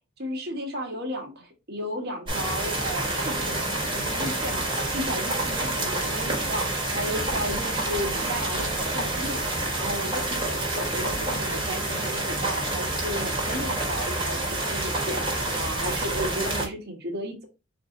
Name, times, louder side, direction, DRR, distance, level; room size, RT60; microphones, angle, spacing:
voice 1, 0.2-4.6 4.9-6.7 6.9-9.4 9.8-15.2 15.5-17.4, equal, 55° right, 2 dB, 1.4 m, -34 dB
sound 1, 2.3-16.7, right 2 dB, 25° right, 1.5 m, -28 dB
4.4 x 2.7 x 3.8 m, 0.29 s
head